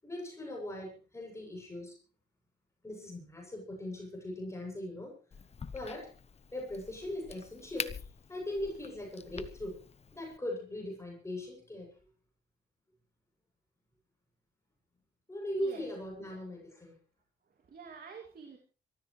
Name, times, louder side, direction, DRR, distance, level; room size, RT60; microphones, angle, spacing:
voice 1, 0.0-2.0 2.8-5.1 5.7-6.1 6.5-9.8 10.1-11.9 15.3-16.9, left 1 dB, 15° left, -1 dB, 7.7 m, -39 dB
Crack, 5.3-10.4, left 6 dB, 35° left, 1.0 m, -45 dB
voice 2, 15.6-16.4 17.5-18.6, right 5 dB, 50° right, 4 dB, 2.8 m, -50 dB
24.5 x 14.5 x 3.3 m, 0.34 s
cardioid pair, 95°, 19 cm